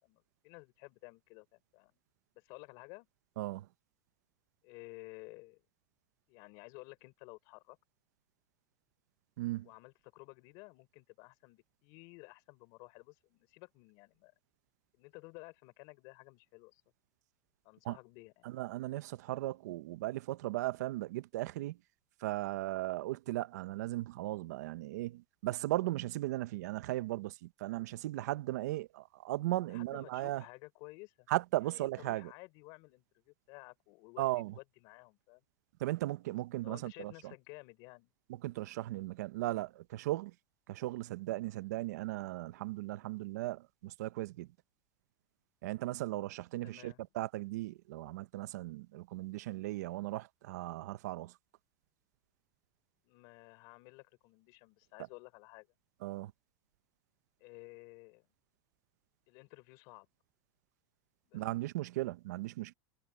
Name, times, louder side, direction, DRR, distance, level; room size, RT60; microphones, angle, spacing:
voice 1, 0.0-1.9 2.3-3.1 4.6-5.6 6.3-7.8 9.6-14.3 14.9-16.8 17.6-18.5 29.7-31.3 31.6-35.4 36.6-38.1 46.6-47.0 53.0-55.7 57.4-58.3 59.3-60.1 61.2-61.4, left 27 dB, 50° left, 5.5 m, -54 dB
voice 2, 9.4-9.7 17.8-18.0 18.4-21.8 22.2-30.4 31.3-32.3 34.2-34.5 35.8-37.1 38.4-40.3 40.7-44.5 45.6-51.3 56.0-56.3 61.3-62.7, right 17 dB, 90° right, 0.7 m, -37 dB
supercardioid pair, 170°, 9 cm